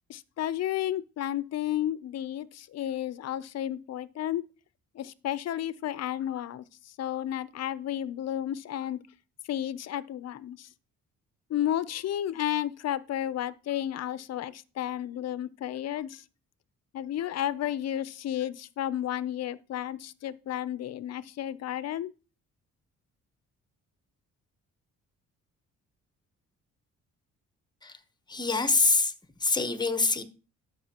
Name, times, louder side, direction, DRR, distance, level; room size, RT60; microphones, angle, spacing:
voice 1, 0.1-4.4 4.9-9.0 9.5-10.7 11.5-16.2 16.9-22.1, left 11 dB, 55° left, 0.6 m, -32 dB
voice 2, 28.3-29.1 29.4-30.2, left 3 dB, 15° left, 0.9 m, -25 dB
12.0 x 5.4 x 2.9 m
cardioid pair, 90°, 30 cm